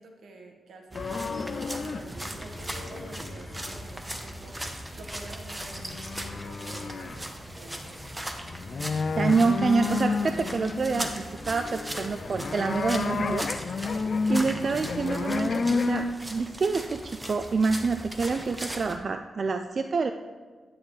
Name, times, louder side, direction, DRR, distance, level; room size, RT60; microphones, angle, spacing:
voice 1, 0.0-4.7 5.0-8.0, right 2 dB, 80° right, 3 dB, 1.3 m, -47 dB
sound 1, 0.9-2.0 2.3-3.8 5.1-5.2 5.7-7.2 7.6-7.7 7.9-16.1, left 4 dB, 50° left, 0.5 m, -31 dB
sound 2, 0.9-19.0, right 1 dB, 10° right, 0.9 m, -39 dB
voice 2, 9.2-13.4 14.3-20.1, right 4 dB, 50° right, 7 dB, 0.4 m, -27 dB
9.8 x 9.4 x 3.2 m, 1.4 s
cardioid pair, 100°, 0 cm